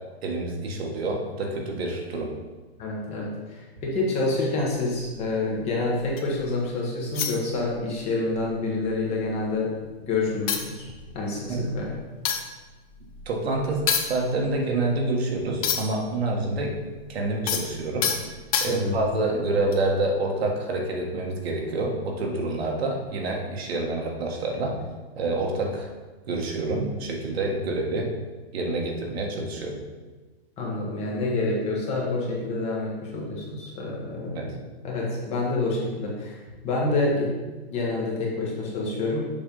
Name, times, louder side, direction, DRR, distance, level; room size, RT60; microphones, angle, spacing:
voice 1, 0.2-2.3 11.5-11.7 13.3-16.7 17.1-18.1 18.6-24.8 25.2-25.9 26.3-28.1 28.5-29.8 34.3-34.5, right 2 dB, 75° right, 0 dB, 1.6 m, -27 dB
voice 2, 2.8-9.7 10.0-10.9 11.1-12.0 18.7-19.0 30.6-34.5 34.8-37.3 37.7-39.3, left 2 dB, 20° left, -3 dB, 1.2 m, -27 dB
sound 1, 4.6-6.4 7.1-8.0 8.3-8.5 8.8-9.7 10.1-10.2 10.5-16.1 16.4-19.1 19.7-19.9, left 7 dB, 35° left, 0.6 m, -30 dB
7.0 x 3.5 x 5.4 m, 1.3 s
hypercardioid pair, 160°, 31 cm